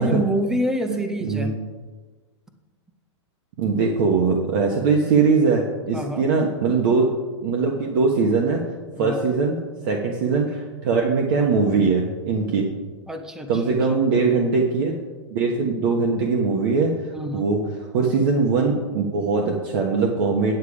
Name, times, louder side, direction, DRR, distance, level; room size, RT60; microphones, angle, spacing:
voice 1, 0.0-1.5 4.7-4.9 5.9-6.3 9.0-9.2 13.1-14.1 17.1-17.5, equal, 5° right, 6 dB, 0.6 m, -27 dB
voice 2, 3.6-7.1 7.4-8.6 9.0-9.6 9.8-12.7 13.5-15.0 15.3-16.9 17.3-17.6 17.9-20.5, right 4 dB, 45° right, 0 dB, 1.3 m, -21 dB
9.4 x 8.2 x 5.0 m, 1.3 s
hypercardioid pair, 160°, 15 cm